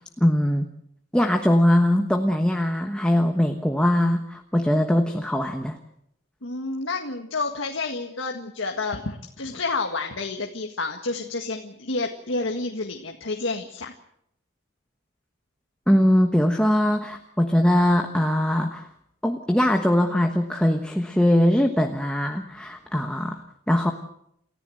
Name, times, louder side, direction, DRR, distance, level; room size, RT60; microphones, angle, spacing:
voice 1, 0.2-0.7 1.1-5.8 15.9-18.9 19.2-23.9, left 1 dB, 5° left, 3 dB, 1.2 m, -21 dB
voice 2, 6.4-13.9, left 3 dB, 85° left, 3 dB, 1.8 m, -29 dB
28.5 x 14.5 x 7.9 m, 0.76 s
head